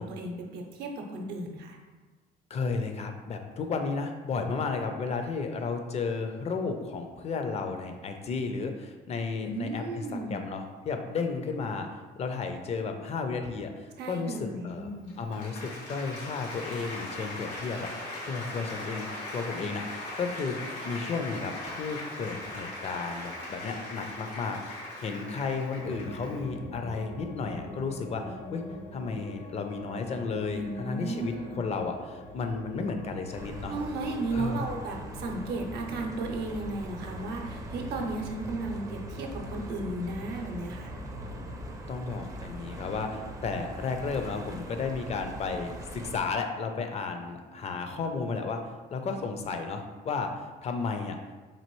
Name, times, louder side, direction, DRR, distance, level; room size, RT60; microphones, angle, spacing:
voice 1, 0.0-1.8 9.4-10.4 14.0-15.1 30.5-31.6 33.7-40.9, right 2 dB, 75° right, 2 dB, 0.6 m, -35 dB
voice 2, 2.5-14.9 15.2-17.9 18.3-24.6 25.0-28.6 28.9-33.8 34.3-34.7 41.2-41.6 41.9-48.6 48.9-51.2, left 4 dB, 40° left, 5 dB, 0.5 m, -33 dB
Applause, 14.9-26.5, left 1 dB, 90° left, 1.5 m, -39 dB
sound 1, 25.8-41.6, left 1 dB, 70° left, 0.9 m, -44 dB
sound 2, 33.3-46.2, right 1 dB, 20° right, 0.4 m, -42 dB
4.2 x 2.6 x 3.0 m, 1.3 s
cardioid pair, 110°, 17 cm